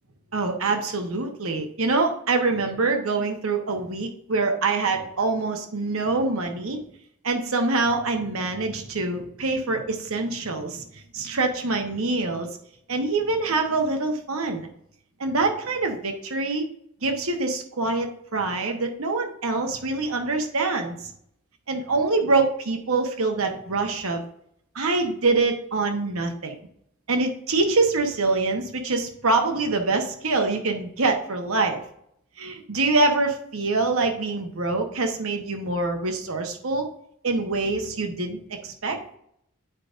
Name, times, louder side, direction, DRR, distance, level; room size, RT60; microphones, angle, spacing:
voice 1, 0.3-6.8 7.2-12.5 12.9-14.7 15.2-16.7 17.0-21.1 21.7-24.2 24.7-26.6 27.1-31.8 32.4-36.9 37.2-39.0, right 3 dB, 85° right, 4 dB, 1.1 m, -25 dB
10.0 x 5.0 x 2.5 m, 0.71 s
head